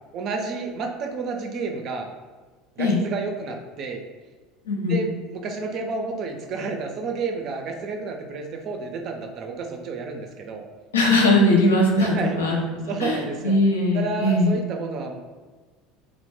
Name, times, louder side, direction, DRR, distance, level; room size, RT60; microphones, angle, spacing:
voice 1, 0.1-2.1 2.8-4.0 4.9-10.6 12.0-13.6 13.9-15.2, right 4 dB, 50° right, 4 dB, 0.4 m, -30 dB
voice 2, 4.7-5.0 10.9-14.6, left 1 dB, 85° left, -2 dB, 0.5 m, -20 dB
2.1 x 2.0 x 3.1 m, 1.3 s
hypercardioid pair, 75°, 0 cm